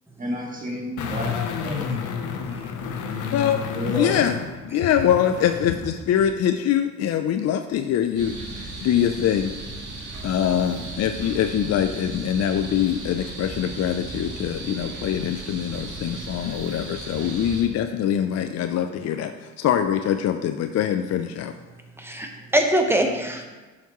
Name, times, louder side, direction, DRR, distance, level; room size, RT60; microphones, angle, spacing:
voice 1, 0.2-1.9 3.7-4.2, equal, 25° right, -1 dB, 1.9 m, -31 dB
sound 1, 1.0-5.9 6.2-6.3, left 7 dB, 80° left, 0.9 m, -30 dB
voice 2, 3.3-4.3 4.6-9.5 10.2-21.5, left 9 dB, 55° left, 7 dB, 0.5 m, -24 dB
sound 2, 8.2-17.6, right 2 dB, 85° right, 1.9 m, -36 dB
voice 3, 22.0-23.4, right 1 dB, 10° right, 3 dB, 1.1 m, -22 dB
10.5 x 5.8 x 3.1 m, 1.2 s
cardioid pair, 90°, 30 cm